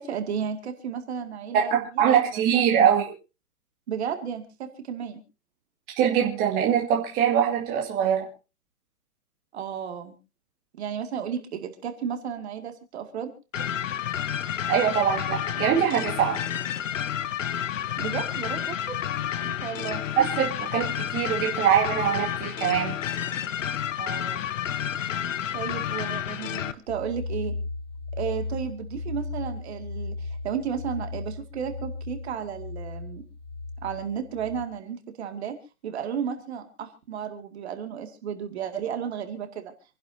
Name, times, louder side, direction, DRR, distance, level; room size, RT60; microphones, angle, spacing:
voice 1, 0.0-2.4 2.7-2.9 3.9-5.2 9.5-10.2 10.7-13.3 18.0-19.0 19.4-20.0 24.0-24.5 25.5-27.5 28.2-33.3 33.8-35.6 35.8-39.7, right 8 dB, 40° right, 6 dB, 2.3 m, -33 dB
voice 2, 1.5-3.0 6.0-8.3 14.7-16.4 20.2-22.9, right 8 dB, 20° right, 0 dB, 2.1 m, -23 dB
sound 1, 13.5-26.7, left 9 dB, 50° left, 1.0 m, -30 dB
sound 2, 26.9-34.7, left 3 dB, 35° left, 2.2 m, -36 dB
27.5 x 11.0 x 2.7 m, 0.31 s
hypercardioid pair, 155°, 47 cm